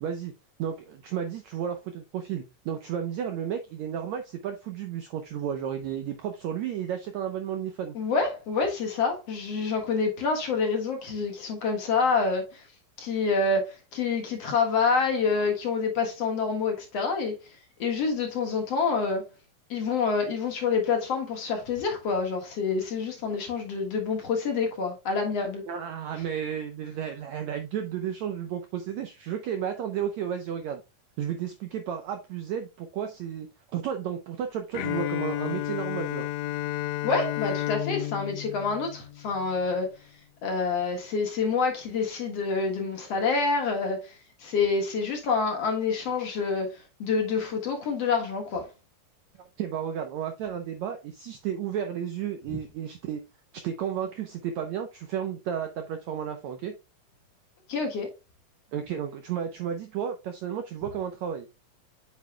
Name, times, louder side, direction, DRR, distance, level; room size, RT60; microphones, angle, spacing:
voice 1, 0.0-0.3 0.6-7.9 25.7-30.8 31.2-36.2 49.4-53.2 53.6-56.8 58.7-61.5, right 8 dB, 90° right, 1.6 m, -33 dB
voice 2, 7.9-12.7 13.0-19.3 19.7-25.6 37.0-39.9 40.4-48.7 57.7-58.1, left 4 dB, 55° left, 2.1 m, -27 dB
Bowed string instrument, 34.8-39.6, left 14 dB, 85° left, 2.5 m, -32 dB
8.3 x 6.5 x 2.2 m
omnidirectional pair, 4.2 m